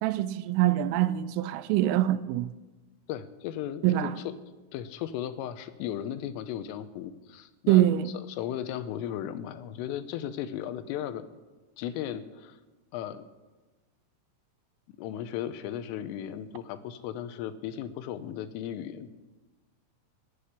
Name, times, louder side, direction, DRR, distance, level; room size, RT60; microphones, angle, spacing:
voice 1, 0.0-2.5 3.8-4.1 7.7-8.1, right 13 dB, 85° right, 3.1 m, -24 dB
voice 2, 3.1-4.4 4.7-11.3 11.8-12.6 12.9-13.3 15.0-19.1, left 10 dB, 85° left, 3.4 m, -36 dB
16.5 x 8.5 x 9.7 m
omnidirectional pair, 5.8 m